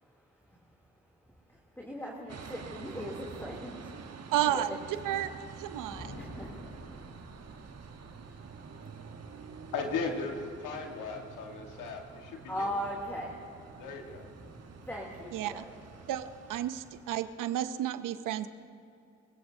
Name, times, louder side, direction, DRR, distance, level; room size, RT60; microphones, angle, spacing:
voice 1, 1.5-3.9 4.5-4.6 6.1-6.5 8.3-8.4 12.5-13.6 14.4-15.7, equal, 5° left, -3 dB, 2.9 m, -39 dB
sound 1, 2.3-17.4, right 5 dB, 55° right, 1.3 m, -48 dB
voice 2, 4.3-4.7 5.0-5.3 5.6-6.2 15.3-15.6 16.1-18.5, right 12 dB, 90° right, 12 dB, 0.7 m, -32 dB
Thunder, 5.6-7.9, left 1 dB, 55° left, 3.1 m, -48 dB
voice 3, 9.7-12.7 13.8-14.3, left 4 dB, 90° left, 3 dB, 1.6 m, -37 dB
26.0 x 16.5 x 2.7 m, 2.6 s
supercardioid pair, 50°, 31 cm